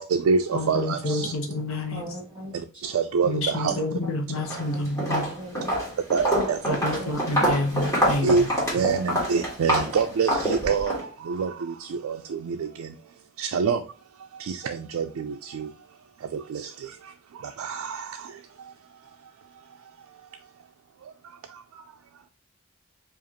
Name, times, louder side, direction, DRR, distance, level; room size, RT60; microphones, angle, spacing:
voice 1, 0.0-1.3 2.5-3.8 6.1-6.8 8.2-8.5 8.7-12.9 13.4-13.8 14.4-15.7 16.3-16.9 17.4-18.3, right 5 dB, 70° right, 0.3 m, -26 dB
voice 2, 0.5-2.0 3.2-5.2 6.7-8.5, left 2 dB, 70° left, 0.9 m, -28 dB
voice 3, 1.9-2.8 4.7-5.8 6.9-7.1 7.6-7.8 8.9-9.2, right 1 dB, 15° right, 1.5 m, -40 dB
Walk footsteps, 4.4-4.7 5.0-11.0, equal, 15° left, 1.5 m, -26 dB
4.8 x 2.5 x 2.9 m
head